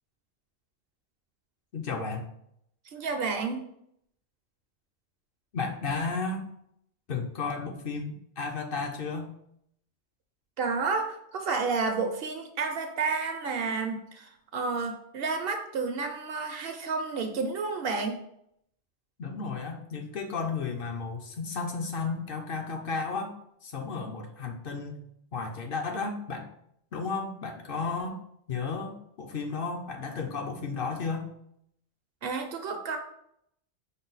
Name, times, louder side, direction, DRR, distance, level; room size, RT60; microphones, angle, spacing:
voice 1, 1.7-2.3 5.5-6.5 7.1-9.3 19.2-23.3 23.6-25.0 25.3-26.5 26.9-28.2 28.5-31.3, left 4 dB, 60° left, 3 dB, 0.7 m, -33 dB
voice 2, 2.9-3.6 10.6-18.2 32.2-33.0, right 4 dB, 65° right, 5 dB, 0.7 m, -30 dB
5.4 x 2.2 x 3.9 m, 0.73 s
omnidirectional pair, 1.2 m